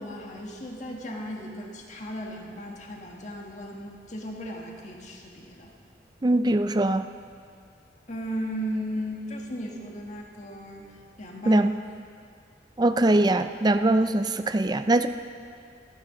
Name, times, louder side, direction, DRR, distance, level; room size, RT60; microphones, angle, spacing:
voice 1, 0.0-5.7 8.1-10.8 11.2-11.6, equal, 40° left, 0 dB, 1.7 m, -36 dB
voice 2, 6.2-7.1 11.5-11.7 12.8-15.1, right 2 dB, 25° right, 9 dB, 0.4 m, -22 dB
25.5 x 9.3 x 3.9 m, 2.3 s
head